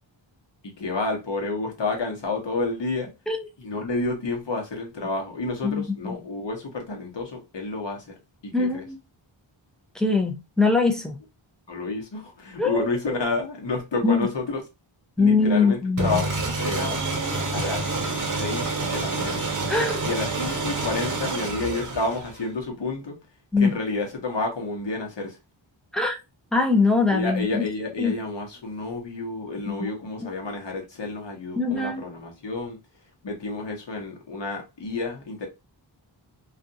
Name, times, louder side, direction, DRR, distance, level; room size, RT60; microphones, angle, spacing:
voice 1, 0.6-3.1 3.6-8.1 8.4-8.8 11.7-14.6 15.2-17.0 17.5-19.4 20.0-23.2 23.6-25.4 27.1-32.8 33.2-35.5, left 3 dB, 65° left, 1.1 m, -30 dB
voice 2, 5.6-6.2 8.5-9.0 9.9-11.2 12.6-13.2 14.0-14.3 15.2-16.2 19.7-20.0 23.5-23.7 25.9-26.2 26.5-27.6 28.0-28.2 29.7-29.9 30.2-30.3 31.6-32.0, left 3 dB, ahead, 0.6 m, -22 dB
sound 1, 16.0-22.5, right 3 dB, 40° right, 0.8 m, -28 dB
2.6 x 2.4 x 2.6 m
wide cardioid pair, 70°, 47 cm